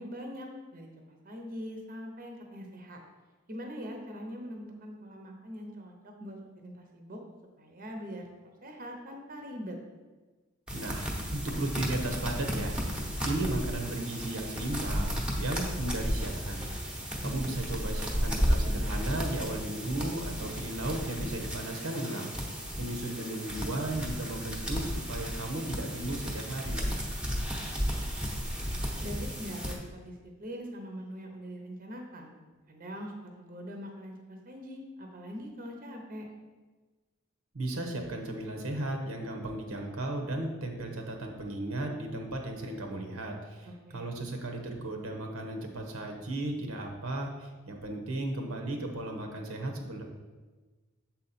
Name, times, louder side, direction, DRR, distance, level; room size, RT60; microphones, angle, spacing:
voice 1, 0.0-3.0 3.5-7.2 7.6-9.8 17.1-17.5 29.0-30.1 30.4-32.3 32.7-36.3 43.7-44.1, equal, 40° right, 2 dB, 0.8 m, -42 dB
sound 1, 10.7-29.8, equal, 5° right, 0.9 m, -33 dB
voice 2, 10.7-26.9 37.5-50.0, right 1 dB, 80° right, 3 dB, 1.0 m, -35 dB
7.2 x 4.3 x 4.1 m, 1.3 s
head